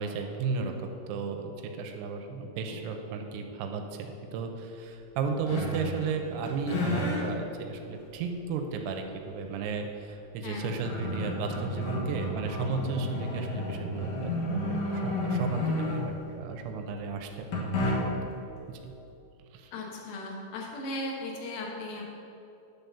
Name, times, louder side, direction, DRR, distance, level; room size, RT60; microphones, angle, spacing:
voice 1, 0.0-17.6 18.1-18.4 18.7-18.9 19.5-19.7, right 5 dB, 85° right, 4 dB, 2.6 m, -34 dB
sound 1, 5.5-6.2 6.5-7.2 7.9-8.0 10.1-10.2 10.5-16.3 17.5-18.3, left 1 dB, 85° left, 1.4 m, -31 dB
voice 2, 19.7-22.1, left 2 dB, 65° left, -2 dB, 2.2 m, -37 dB
9.6 x 3.8 x 7.0 m, 2.8 s
omnidirectional pair, 5.2 m